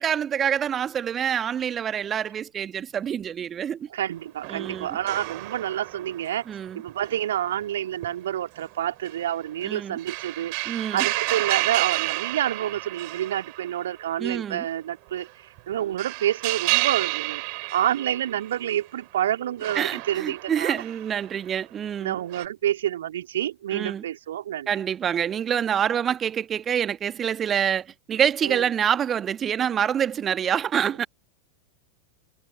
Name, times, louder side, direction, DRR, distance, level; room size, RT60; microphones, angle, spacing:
voice 1, 0.0-3.9 4.5-5.0 6.5-6.8 9.6-10.0 10.6-11.0 14.2-14.6 19.7-22.2 23.7-24.0 24.7-31.1, right 8 dB, 25° right, 1.6 m, -26 dB
voice 2, 3.9-6.4 6.7-10.5 10.9-15.3 15.7-20.8 22.0-24.7 28.4-28.6, right 11 dB, 60° right, 2.6 m, -28 dB
sound 1, 4.4-7.6 8.0-8.1 8.5-8.7 9.0-14.0 14.3-14.4 15.6-18.6 19.6-21.4 22.3-22.5, right 40 dB or more, 45° right, 3.4 m, -30 dB
figure-of-eight pair, 90°, 0 cm